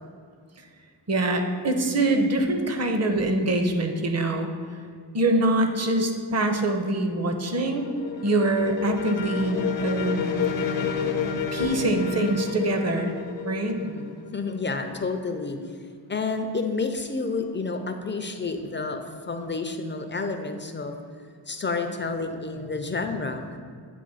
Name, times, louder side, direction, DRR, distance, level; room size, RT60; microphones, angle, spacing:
voice 1, 1.1-4.5 5.1-7.9 8.2-10.3 11.5-13.1 13.4-13.8, right 2 dB, 35° right, 5 dB, 0.7 m, -24 dB
sound 1, 7.1-14.8, left 6 dB, 90° left, 0.7 m, -30 dB
voice 2, 13.7-14.1 14.3-15.7 16.1-20.9 21.5-23.6, left 3 dB, 25° left, 6 dB, 0.4 m, -30 dB
8.6 x 3.0 x 4.0 m, 2.1 s
cardioid pair, 85°, 45 cm